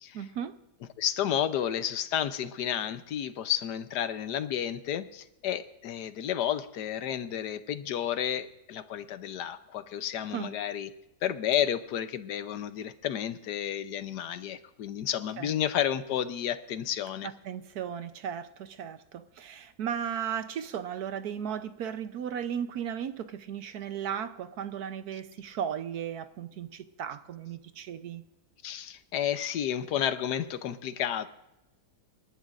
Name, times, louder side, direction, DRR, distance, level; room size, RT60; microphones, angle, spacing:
voice 1, 0.1-0.6 10.3-10.5 15.4-15.5 17.2-28.2, right 8 dB, 70° right, 11 dB, 1.2 m, -36 dB
voice 2, 1.0-10.9 11.2-17.3 28.6-31.3, left 10 dB, 75° left, 12 dB, 1.3 m, -31 dB
28.0 x 11.5 x 2.5 m, 0.91 s
omnidirectional pair, 1.8 m